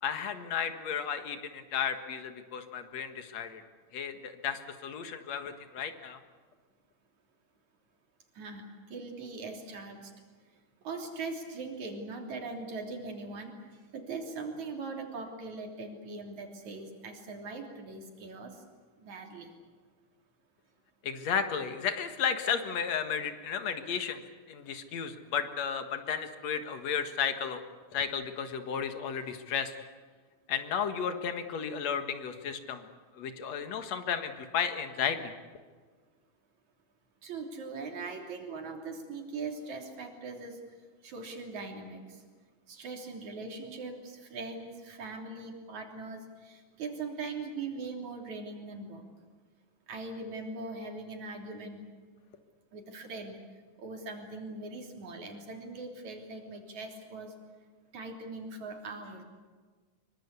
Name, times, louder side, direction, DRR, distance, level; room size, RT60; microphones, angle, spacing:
voice 1, 0.0-3.6 3.9-6.2 21.0-24.2 24.5-27.6 27.9-29.7 30.5-32.9 33.1-35.3, left 7 dB, 60° left, 8 dB, 2.7 m, -33 dB
voice 2, 8.4-10.1 10.8-13.6 13.9-18.6 19.0-19.5 37.2-40.6 41.0-42.2 42.7-49.0 49.9-51.9 52.7-53.4 53.8-57.3 57.9-59.2, right 3 dB, 70° right, 3 dB, 4.6 m, -41 dB
24.5 x 23.5 x 8.3 m, 1.5 s
omnidirectional pair, 3.5 m